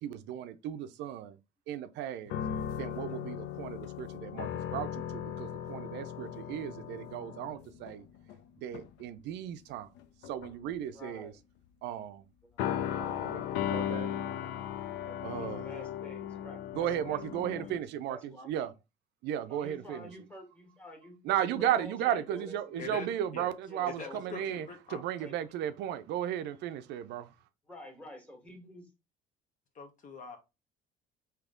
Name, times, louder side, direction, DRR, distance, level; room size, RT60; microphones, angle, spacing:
voice 1, 0.0-1.4 1.7-2.4 2.8-8.0 8.6-9.9 10.2-11.3 11.8-12.3 13.0-14.1 15.2-15.8 16.7-18.7 19.2-20.1 21.2-27.3, right 10 dB, 70° right, 0.4 m, -35 dB
sound 1, 2.3-8.4 8.7-9.0 10.0-10.7 12.6-17.8, left 10 dB, 75° left, 0.5 m, -37 dB
voice 2, 10.9-11.4 15.0-18.5 19.5-23.1 23.7-24.2 25.2-25.3 27.6-28.9, left 1 dB, 5° left, 1.7 m, -49 dB
voice 3, 24.0-25.0 29.7-30.4, left 4 dB, 45° left, 1.0 m, -43 dB
3.4 x 2.8 x 3.6 m
supercardioid pair, 85°, 18 cm